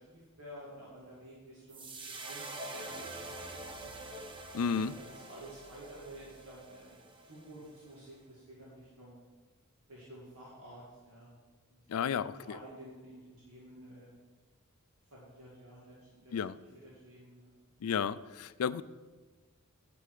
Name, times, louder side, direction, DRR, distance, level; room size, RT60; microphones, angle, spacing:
voice 1, 0.1-3.9 4.7-7.0 7.2-9.2 9.9-11.3 11.7-14.1 15.1-16.7 17.0-17.5, right 1 dB, 75° right, -7 dB, 2.4 m, -52 dB
sound 1, 1.7-8.0, right 2 dB, 25° right, 0.7 m, -46 dB
voice 2, 4.5-4.9 11.9-12.6 16.3-16.6 17.8-18.8, left 7 dB, 75° left, 16 dB, 0.4 m, -32 dB
10.0 x 6.9 x 4.8 m, 1.3 s
head